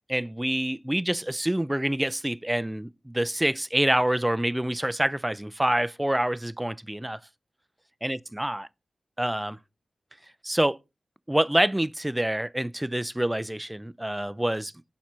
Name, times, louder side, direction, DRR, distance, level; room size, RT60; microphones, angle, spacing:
voice 1, 0.1-7.2 8.0-8.7 9.2-9.6 10.4-10.8 11.3-14.7, right 1 dB, 15° right, 0.4 m, -26 dB
6.0 x 4.3 x 4.5 m
cardioid pair, 40°, 0 cm